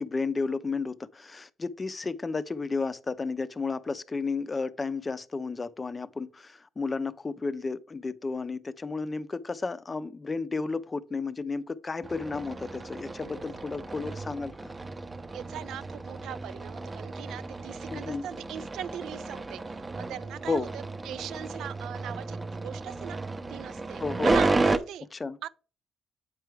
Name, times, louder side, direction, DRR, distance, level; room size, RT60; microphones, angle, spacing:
voice 1, 0.0-14.7 17.9-18.3 20.5-20.7 24.0-24.3 25.1-25.4, left 4 dB, 30° left, 0.5 m, -32 dB
sound 1, 12.0-24.8, right 3 dB, 25° right, 0.6 m, -32 dB
voice 2, 15.3-23.2 23.5-25.1 25.4-25.5, right 10 dB, 80° right, 0.4 m, -40 dB
8.2 x 4.6 x 3.4 m
cardioid pair, 90°, 0 cm